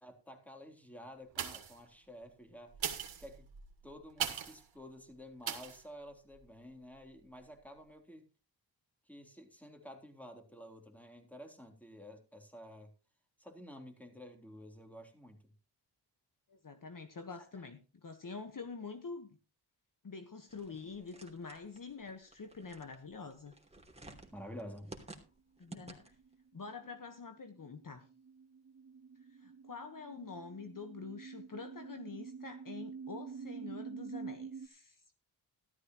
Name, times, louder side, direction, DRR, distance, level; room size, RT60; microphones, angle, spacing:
voice 1, 0.0-3.5 3.8-8.3 9.1-12.9 13.4-15.4 24.3-24.9, equal, 5° left, 4 dB, 3.6 m, -51 dB
sound 1, 1.3-1.9 2.7-4.7 5.4-5.8 6.3-6.4, right 8 dB, 85° right, 2.1 m, -39 dB
voice 2, 16.5-19.3 20.0-23.5 25.6-26.2 26.5-28.0 29.3-35.0, left 4 dB, 45° left, 7 dB, 1.5 m, -46 dB
sound 2, 20.5-26.3, right 2 dB, 15° right, 3.0 m, -54 dB
sound 3, 26.0-34.7, right 5 dB, 35° right, 0.8 m, -48 dB
14.0 x 13.0 x 3.1 m, 0.32 s
cardioid pair, 65°, 45 cm